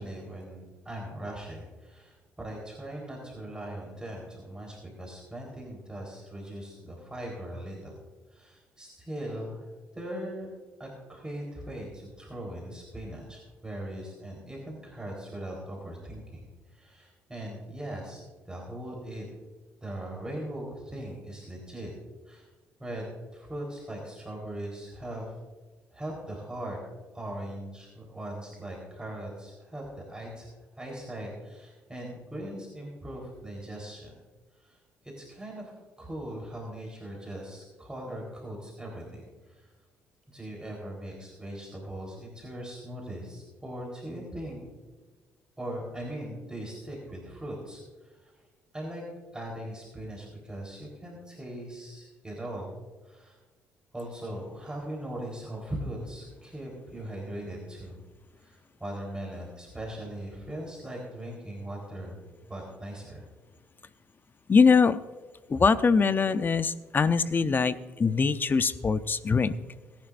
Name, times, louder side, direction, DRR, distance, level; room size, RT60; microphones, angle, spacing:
voice 1, 0.0-7.9 8.3-9.7 9.9-10.5 10.8-19.3 19.8-21.9 22.3-22.5 22.8-25.3 25.9-26.8 27.1-30.5 30.8-34.1 34.5-39.7 40.3-44.6 45.6-48.3 48.7-49.0 49.3-52.7 53.0-53.4 53.9-57.9 58.4-62.2 62.5-63.2, right 1 dB, 15° right, -2 dB, 4.1 m, -40 dB
voice 2, 64.5-65.0 65.5-69.5, left 5 dB, 35° left, 13 dB, 0.7 m, -23 dB
22.0 x 10.5 x 2.6 m, 1.3 s
supercardioid pair, 60°, 6 cm